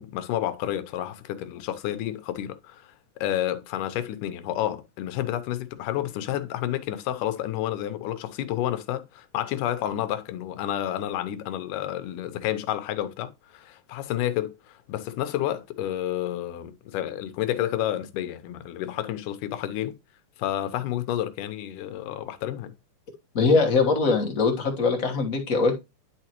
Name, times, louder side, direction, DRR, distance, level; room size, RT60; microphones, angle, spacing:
voice 1, 0.0-20.0 20.4-22.7, left 12 dB, 85° left, 2.3 m, -30 dB
voice 2, 23.3-25.7, left 4 dB, 50° left, 1.0 m, -22 dB
10.5 x 4.8 x 3.0 m
omnidirectional pair, 3.7 m